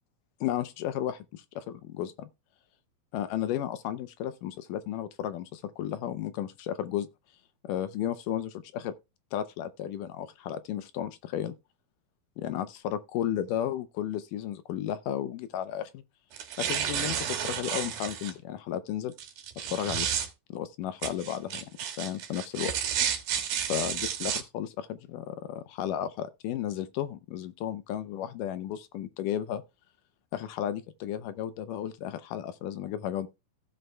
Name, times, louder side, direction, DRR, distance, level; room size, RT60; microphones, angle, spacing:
voice 1, 0.4-2.3 3.1-7.1 7.6-8.9 9.3-11.5 12.4-16.0 16.6-19.1 19.6-20.1 20.5-21.6 22.0-22.7 23.7-29.6 30.3-33.3, left 11 dB, 80° left, 2.0 m, -33 dB
sound 1, 16.3-18.3 19.2-20.3 21.0-24.4, right 9 dB, 75° right, 3.1 m, -31 dB
15.5 x 7.7 x 2.2 m
omnidirectional pair, 4.3 m